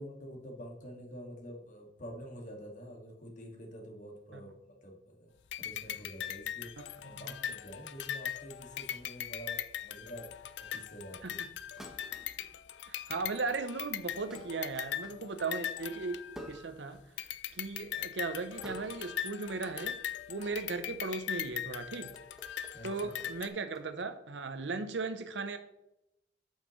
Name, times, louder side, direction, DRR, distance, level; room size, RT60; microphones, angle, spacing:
voice 1, 0.0-5.3 5.6-6.7 7.0-11.2 22.7-23.1, equal, 45° left, 2.0 m, -47 dB
sound 1, 5.5-16.7 17.2-23.5, left 10 dB, 75° left, 0.5 m, -40 dB
voice 2, 6.8-7.3 11.2-11.5 12.9-17.0 17.5-20.0 20.3-22.1 22.8-25.6, right 4 dB, 80° right, 0.8 m, -37 dB
sound 2, 9.4-9.8 11.8-12.6 13.1-13.5 14.3-15.4 16.3-17.2 17.5-17.7 18.6-19.2 19.5-19.8 21.5-21.7 22.1-23.9, equal, 5° right, 1.2 m, -51 dB
8.7 x 7.3 x 3.2 m
head